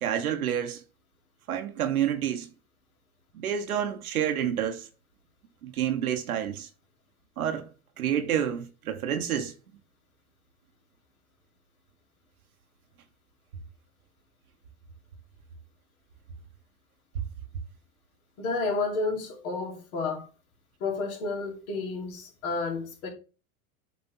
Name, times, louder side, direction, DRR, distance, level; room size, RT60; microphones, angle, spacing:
voice 1, 0.0-0.8 1.5-2.5 3.3-4.9 5.6-6.7 7.4-7.7 8.0-9.5, right 9 dB, 85° right, 1.0 m, -28 dB
voice 2, 18.4-20.3 20.8-23.1, left 3 dB, 65° left, 2.6 m, -31 dB
8.2 x 3.4 x 3.8 m
hypercardioid pair, 95°, 42 cm